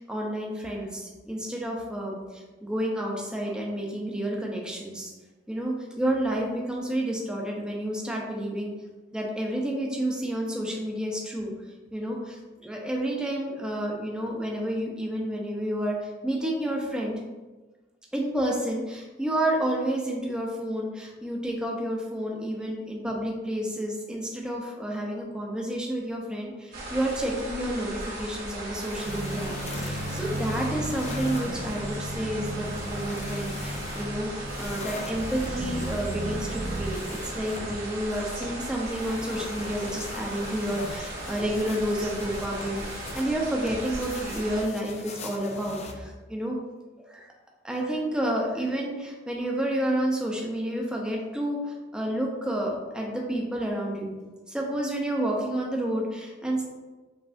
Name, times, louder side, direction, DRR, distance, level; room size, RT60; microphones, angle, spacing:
voice 1, 0.0-5.1 5.5-8.7 9.1-11.5 11.9-16.0 16.2-17.2 18.1-46.6 47.0-47.3 47.6-51.6 51.9-54.1 54.5-56.6, right 1 dB, 5° right, -2 dB, 0.7 m, -30 dB
sound 1, 26.7-44.7, right 1 dB, 50° right, 1.1 m, -37 dB
sound 2, 28.8-45.9, left 3 dB, 35° left, 0.4 m, -42 dB
sound 3, 29.0-37.0, right 1 dB, 30° right, 0.3 m, -35 dB
5.5 x 3.3 x 2.6 m, 1.2 s
head